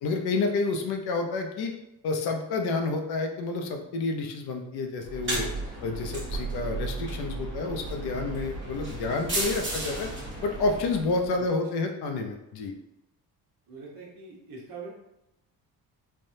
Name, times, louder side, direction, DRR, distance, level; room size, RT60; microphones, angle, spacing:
voice 1, 0.0-1.7 2.0-5.5 5.8-10.1 10.4-12.7, left 3 dB, 75° left, 4 dB, 0.6 m, -29 dB
sound 1, 5.0-11.4, right 2 dB, 30° right, 1.0 m, -34 dB
voice 2, 13.7-14.9, right 4 dB, 60° right, -3 dB, 1.1 m, -43 dB
3.3 x 2.2 x 2.6 m, 0.87 s
cardioid pair, 110°, 39 cm